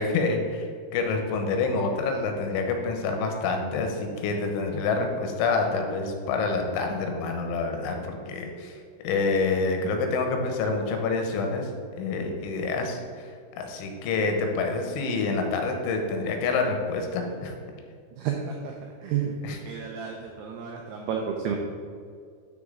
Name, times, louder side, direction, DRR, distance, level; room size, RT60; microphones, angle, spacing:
voice 1, 0.0-8.8 9.0-11.7 12.0-13.0 13.6-17.5 19.4-19.6, left 3 dB, 85° left, 4 dB, 3.3 m, -27 dB
voice 2, 18.2-18.7 19.0-21.6, right 7 dB, 90° right, 1 dB, 2.3 m, -31 dB
12.0 x 4.8 x 3.8 m, 2.2 s
omnidirectional pair, 5.5 m